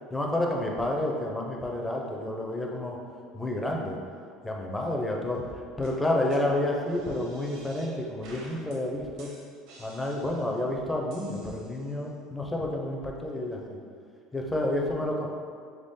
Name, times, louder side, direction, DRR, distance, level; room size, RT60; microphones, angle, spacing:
voice 1, 0.1-3.0 3.3-4.0 4.4-5.4 5.8-9.3 9.8-13.8 14.3-15.3, left 1 dB, 5° left, -1 dB, 0.4 m, -30 dB
sound 1, 5.3-5.5 5.8-5.9 6.3-6.4 6.8-7.9 8.2-8.8 9.2-10.6 11.1-12.0, right 3 dB, 60° right, 0.8 m, -50 dB
3.5 x 3.4 x 4.0 m, 2.2 s
cardioid pair, 175°, 0 cm